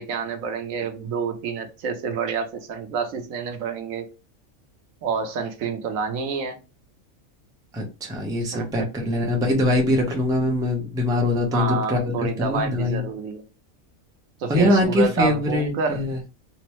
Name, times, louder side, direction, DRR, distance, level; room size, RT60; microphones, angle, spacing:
voice 1, 0.0-4.1 5.0-6.6 8.3-8.9 11.5-13.4 14.4-16.0, right 5 dB, 80° right, 1.1 m, -28 dB
voice 2, 7.7-13.0 14.5-16.2, left 1 dB, 5° right, 0.5 m, -23 dB
3.3 x 2.0 x 3.0 m
omnidirectional pair, 1.4 m